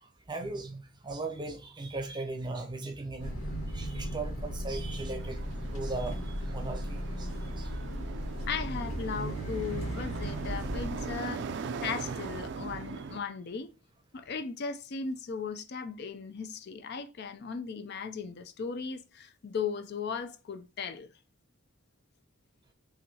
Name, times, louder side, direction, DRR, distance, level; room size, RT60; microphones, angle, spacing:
voice 1, 0.3-5.4 5.7-7.7 11.9-12.1, right 3 dB, 20° right, 0.7 m, -38 dB
sound 1, 3.2-11.2, equal, 90° left, 1.7 m, -36 dB
sound 2, 5.2-13.2, right 5 dB, 55° right, 0.4 m, -41 dB
voice 2, 8.5-11.5 11.8-13.7 14.1-21.1, left 5 dB, 50° left, 0.4 m, -37 dB
5.7 x 2.6 x 2.8 m
head